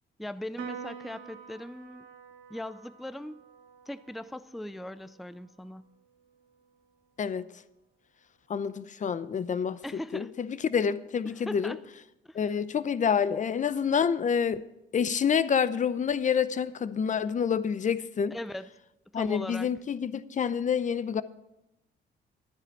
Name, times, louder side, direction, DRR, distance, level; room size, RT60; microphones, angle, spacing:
voice 1, 0.2-2.1 2.5-3.4 3.9-5.9 9.8-10.3 11.5-11.8 12.2-12.5 18.3-18.7 19.1-19.7, left 1 dB, ahead, 0.4 m, -39 dB
Piano, 0.6-7.3, right 8 dB, 85° right, 1.4 m, -48 dB
voice 2, 8.5-9.8 10.1-11.8 12.3-14.6 14.9-18.4 19.1-21.2, left 7 dB, 40° left, 0.6 m, -28 dB
12.5 x 9.7 x 4.7 m
cardioid pair, 90°, 20 cm